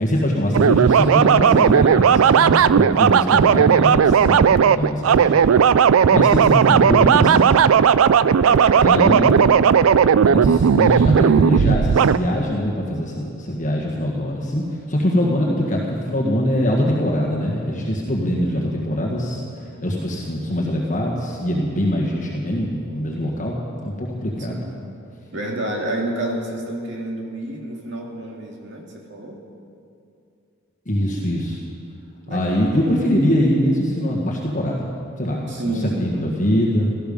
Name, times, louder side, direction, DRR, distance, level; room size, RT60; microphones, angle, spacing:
voice 1, 0.0-5.4 6.1-7.6 8.8-9.4 10.2-19.4 19.8-23.6 23.8-24.6 30.8-31.6 32.3-34.8 35.2-35.5 36.0-36.9, equal, 35° left, -3 dB, 1.6 m, -22 dB
sound 1, 0.5-12.2, right 7 dB, 75° right, 0.4 m, -15 dB
voice 2, 8.3-9.3 18.4-19.1 22.9-23.0 24.4-24.8 25.3-29.4 32.3-32.7 35.5-36.1, right 1 dB, 55° right, -1 dB, 2.4 m, -30 dB
17.5 x 14.0 x 5.5 m, 2.5 s
head